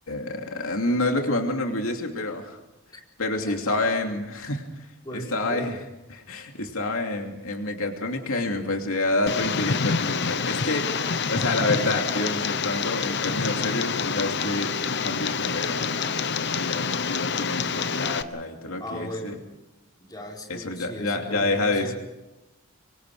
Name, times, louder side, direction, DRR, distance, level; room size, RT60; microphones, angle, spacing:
voice 1, 0.1-2.6 3.2-4.7 5.3-5.7 6.1-16.0 16.5-19.4 20.5-21.9, left 2 dB, 75° left, 3 dB, 2.8 m, -28 dB
voice 2, 3.5-3.8 5.0-5.8 18.8-19.4 20.0-21.9, equal, 20° left, -1 dB, 4.3 m, -38 dB
Tick, 9.3-18.2, left 5 dB, 50° left, 1.0 m, -27 dB
26.0 x 24.5 x 5.0 m, 1.0 s
head